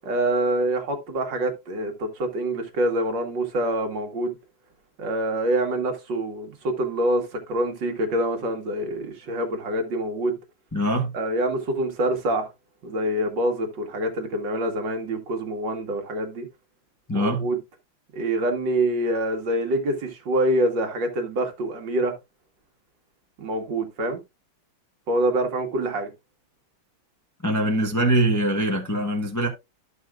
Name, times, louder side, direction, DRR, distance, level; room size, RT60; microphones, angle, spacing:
voice 1, 0.0-4.3 5.0-10.4 11.1-12.5 12.8-16.5 17.1-17.6 18.1-22.1 23.4-24.2 25.1-26.1, right 1 dB, 65° right, 2.0 m, -26 dB
voice 2, 10.7-11.1 17.1-17.5 27.4-29.5, right 1 dB, 15° left, 0.7 m, -23 dB
12.5 x 5.6 x 2.3 m
omnidirectional pair, 2.1 m